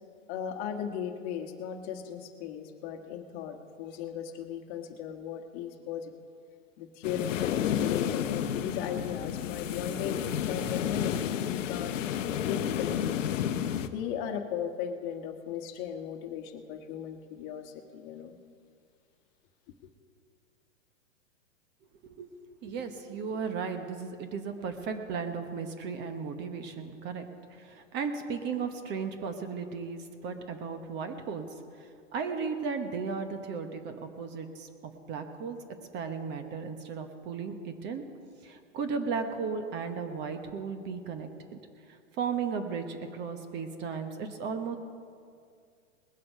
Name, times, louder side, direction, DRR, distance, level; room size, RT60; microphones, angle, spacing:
voice 1, 0.3-6.1 6.8-12.0 12.4-13.4 13.8-18.4, left 8 dB, 35° left, 5 dB, 1.4 m, -37 dB
sound 1, 7.0-13.9, left 9 dB, 70° left, 0.9 m, -31 dB
voice 2, 22.6-31.5 31.8-35.6 35.9-38.0 38.4-41.3 41.9-44.8, right 5 dB, 25° right, 7 dB, 1.0 m, -35 dB
20.0 x 7.6 x 5.6 m, 2.2 s
hypercardioid pair, 130°, 40 cm